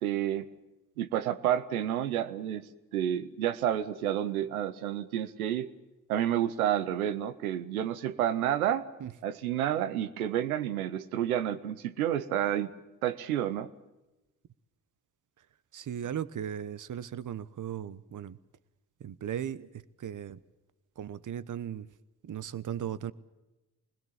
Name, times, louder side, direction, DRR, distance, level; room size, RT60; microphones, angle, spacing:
voice 1, 0.0-0.4 1.0-5.7 6.1-8.9 9.2-12.7 13.0-13.7, right 11 dB, 90° right, 14 dB, 0.9 m, -30 dB
voice 2, 15.7-18.4 19.0-20.4 21.0-21.9 22.2-23.1, right 9 dB, 45° right, 17 dB, 1.1 m, -37 dB
26.0 x 21.0 x 7.4 m, 1.0 s
hypercardioid pair, 40°, 42 cm